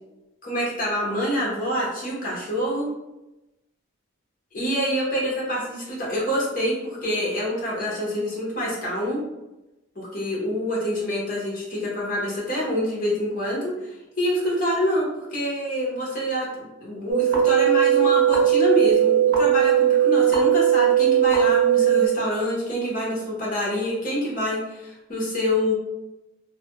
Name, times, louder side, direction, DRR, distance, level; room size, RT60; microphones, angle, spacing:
voice 1, 0.4-2.9 4.5-9.2 10.0-25.7, equal, 40° left, -4 dB, 0.8 m, -26 dB
sound 1, 17.1-22.1, right 10 dB, 80° right, 0.6 m, -18 dB
2.4 x 2.1 x 2.9 m, 0.97 s
head